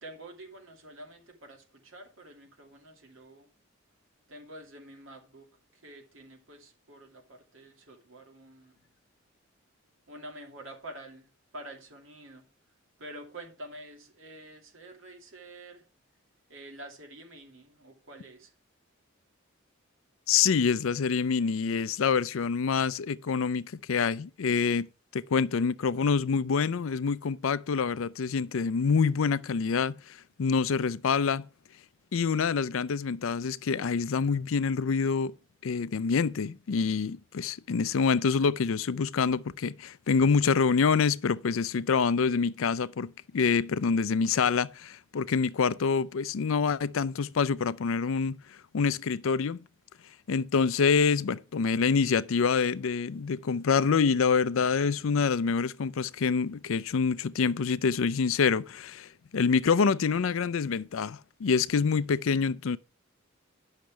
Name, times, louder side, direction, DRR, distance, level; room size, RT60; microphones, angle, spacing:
voice 1, 0.0-3.5 4.3-8.8 10.1-12.5 13.0-15.8 16.5-18.5, right 1 dB, 70° right, 2.5 m, -48 dB
voice 2, 20.3-31.5 32.1-35.3 35.6-48.4 48.7-49.6 50.3-62.8, left 5 dB, 75° left, 0.5 m, -26 dB
10.5 x 6.5 x 4.6 m
head